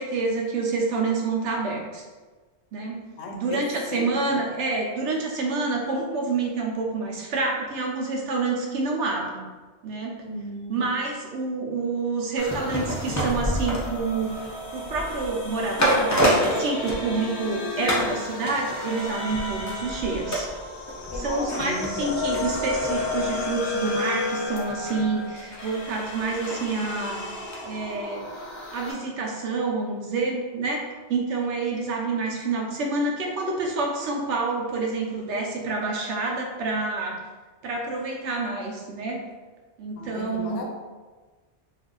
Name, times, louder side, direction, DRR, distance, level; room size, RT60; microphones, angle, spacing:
voice 1, 0.0-2.0 2.7-3.0 3.3-9.5 9.8-10.2 10.7-20.5 21.1-28.3 28.7-37.2 37.6-39.2 39.8-40.6, right 3 dB, 80° right, 0 dB, 0.9 m, -28 dB
voice 2, 3.2-4.4 10.2-10.9 21.1-22.2 25.0-25.1 40.0-40.7, left 1 dB, 90° left, 2 dB, 0.9 m, -35 dB
sound 1, 12.4-28.9, left 2 dB, 50° left, 0.9 m, -33 dB
sound 2, 12.4-17.5 17.9-18.2 18.5-27.6 27.9-28.0, equal, 25° left, 0.4 m, -30 dB
2.6 x 2.5 x 3.7 m, 1.3 s
omnidirectional pair, 1.2 m